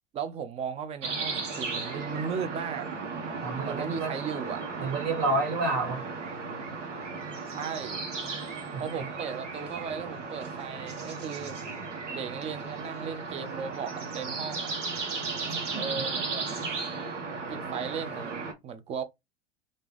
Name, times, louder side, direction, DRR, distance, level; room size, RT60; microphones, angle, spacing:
voice 1, 0.1-2.9 3.6-4.6 7.5-8.0 8.8-11.6 12.1-14.7 15.8-16.5 17.3-19.0, right 6 dB, 20° right, 0.4 m, -36 dB
sound 1, 1.0-18.5, right 4 dB, 75° right, 1.2 m, -35 dB
voice 2, 3.4-4.1 4.8-6.0 8.7-9.0 15.5-16.0, right 3 dB, 45° right, 1.9 m, -30 dB
3.3 x 2.6 x 3.3 m
figure-of-eight pair, 90°, 37 cm